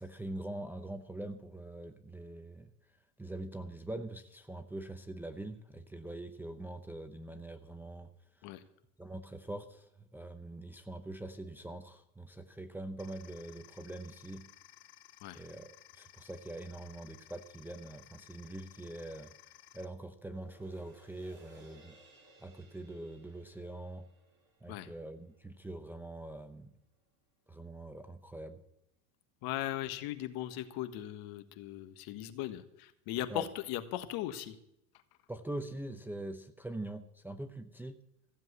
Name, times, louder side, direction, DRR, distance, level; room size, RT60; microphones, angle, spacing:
voice 1, 0.0-2.7 3.2-8.1 9.0-14.5 15.3-19.3 19.7-22.0 22.4-24.1 24.6-26.7 27.5-28.6 33.3-33.5 35.3-38.0, right 1 dB, 5° right, 7 dB, 0.6 m, -43 dB
sound 1, 13.0-19.8, left 14 dB, 70° left, 1.6 m, -58 dB
sound 2, 20.1-26.7 27.1-27.2, right 2 dB, 25° right, 7.1 m, -62 dB
voice 2, 29.4-34.6, left 13 dB, 55° left, 10 dB, 1.5 m, -38 dB
15.5 x 7.6 x 8.3 m, 0.79 s
supercardioid pair, 120°, 44 cm